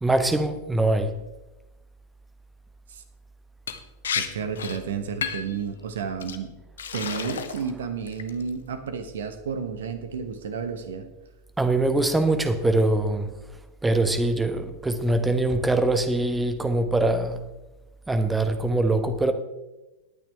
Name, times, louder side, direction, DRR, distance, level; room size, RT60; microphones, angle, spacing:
voice 1, 0.0-1.1 11.6-13.3 13.8-17.4 18.1-19.3, right 2 dB, 10° right, 1.1 m, -23 dB
Liquid, 3.7-4.3 4.6-4.8 5.2-5.6 6.2-6.4 6.8-7.7 8.1-8.5, left 7 dB, 65° left, 0.9 m, -31 dB
voice 2, 4.1-6.5 6.9-11.1, right 6 dB, 60° right, 1.3 m, -31 dB
18.5 x 9.0 x 3.5 m
figure-of-eight pair, 90°, 0 cm